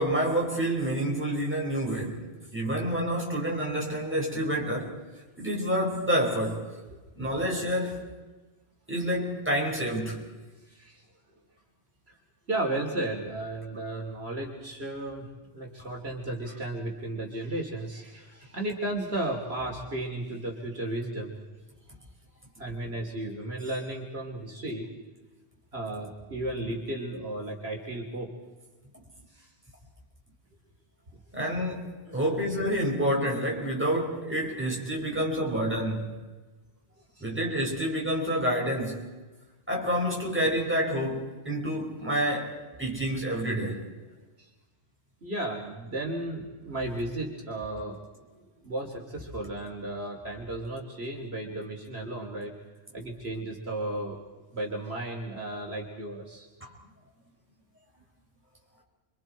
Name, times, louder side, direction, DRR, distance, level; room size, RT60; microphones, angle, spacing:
voice 1, 0.0-2.2 2.5-5.0 5.4-6.7 7.2-8.0 8.9-10.2 31.3-36.1 37.2-39.0 39.7-43.8, equal, 10° right, 5.0 m, -28 dB
voice 2, 6.9-7.3 10.7-11.0 12.1-12.2 12.5-15.3 15.5-21.4 22.6-24.9 25.7-28.3 29.3-29.5 32.1-32.4 37.1-37.3 44.4-44.5 45.2-48.0 48.6-52.5 52.9-54.2 54.5-56.5, right 1 dB, 60° right, 3.1 m, -34 dB
29.5 x 24.5 x 4.4 m
omnidirectional pair, 1.2 m